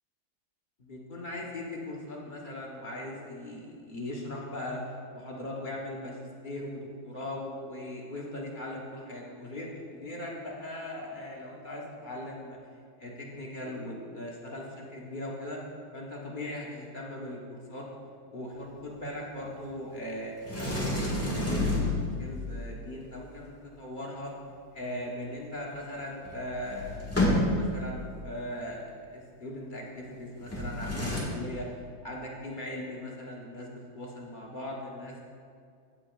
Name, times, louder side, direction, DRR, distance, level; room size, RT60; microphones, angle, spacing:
voice 1, 0.9-12.6 13.0-15.6 15.9-17.8 18.3-21.9 22.2-24.3 24.7-31.7 32.0-35.2, left 1 dB, 40° left, -3 dB, 0.7 m, -39 dB
Sliding door, 20.5-22.4 26.0-26.1 26.2-27.8 30.4-31.2, left 1 dB, 10° left, 1.3 m, -29 dB
14.5 x 7.6 x 2.4 m, 2.3 s
omnidirectional pair, 2.3 m